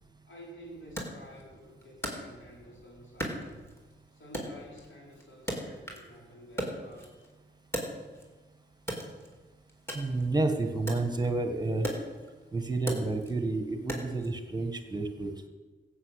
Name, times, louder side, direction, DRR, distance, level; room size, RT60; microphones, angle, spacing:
voice 1, 0.2-3.6 4.1-7.3, equal, 75° left, -3 dB, 5.4 m, -51 dB
Wood, 1.0-2.7 3.2-4.0 4.3-6.2 6.4-8.4 8.8-14.3, equal, 10° left, 4.0 m, -38 dB
voice 2, 9.9-11.9 12.5-15.5, right 2 dB, 20° right, 6 dB, 1.6 m, -30 dB
14.5 x 8.2 x 8.3 m, 1.3 s
cardioid pair, 60°, 20 cm